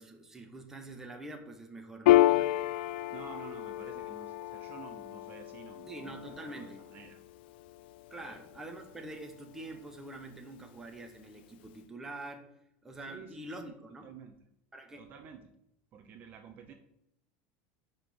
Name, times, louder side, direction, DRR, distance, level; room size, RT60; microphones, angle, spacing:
voice 1, 0.0-2.6 5.9-6.8 8.1-12.5 12.8-14.1 14.7-15.0, right 2 dB, 10° right, 4 dB, 0.9 m, -45 dB
Piano, 2.1-9.0, left 15 dB, 90° left, 0.4 m, -30 dB
voice 2, 3.1-7.2 8.2-8.4 13.1-13.7 14.0-14.3 15.0-15.5 15.9-16.7, right 6 dB, 35° right, 6 dB, 0.7 m, -51 dB
5.7 x 5.3 x 6.6 m, 0.80 s
cardioid pair, 165°, 5 cm